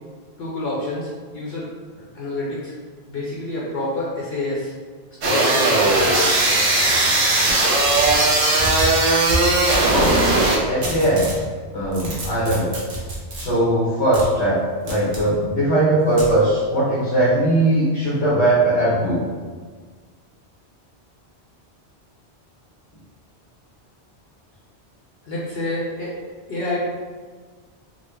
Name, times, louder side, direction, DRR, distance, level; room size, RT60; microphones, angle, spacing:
voice 1, 0.4-1.7 2.1-2.7 3.1-4.7 5.2-6.3 25.2-26.1 26.5-26.9, left 1 dB, 65° left, -6 dB, 0.9 m, -28 dB
sound 1, 5.2-10.6, right 2 dB, 90° right, 1.1 m, -18 dB
sound 2, 6.8-8.2 8.5-10.2 10.8-11.4 11.8-13.5 14.1-14.3 14.9-15.2 16.2-16.3, right 1 dB, 65° right, 1.0 m, -29 dB
voice 2, 9.9-10.2 10.7-11.4 11.7-12.7 13.4-14.6 14.8-19.2, right 1 dB, 90° left, -8 dB, 1.2 m, -19 dB
3.9 x 2.1 x 3.1 m, 1.5 s
omnidirectional pair, 1.1 m